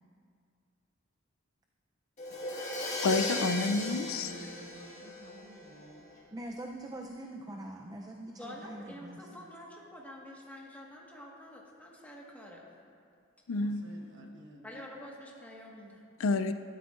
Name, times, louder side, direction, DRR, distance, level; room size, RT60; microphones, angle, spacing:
Crash cymbal, 2.2-5.9, left 2 dB, 35° left, 1.6 m, -37 dB
voice 1, 3.0-4.3 13.5-13.9 16.2-16.5, left 3 dB, 85° left, 10 dB, 0.4 m, -29 dB
voice 2, 3.7-6.1 13.6-14.7, right 1 dB, 60° right, 1 dB, 1.2 m, -51 dB
voice 3, 6.3-9.2, right 1 dB, 20° right, 1 dB, 0.4 m, -43 dB
voice 4, 8.4-12.7 14.6-16.0, left 1 dB, 10° left, -3 dB, 1.4 m, -47 dB
13.0 x 12.0 x 2.5 m, 2.3 s
head